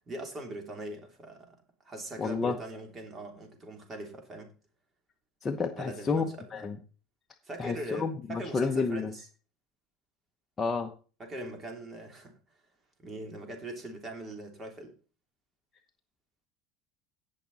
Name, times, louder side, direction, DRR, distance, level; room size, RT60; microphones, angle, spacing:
voice 1, 0.1-1.6 1.8-4.5 5.8-6.6 7.4-9.3 11.2-12.3 13.0-14.9, right 1 dB, 25° right, 4 dB, 3.2 m, -41 dB
voice 2, 2.2-2.6 5.4-6.8 7.6-9.1 10.6-10.9, left 4 dB, 20° left, 3 dB, 0.9 m, -30 dB
17.5 x 6.0 x 4.1 m, 0.36 s
cardioid pair, 140°, 0 cm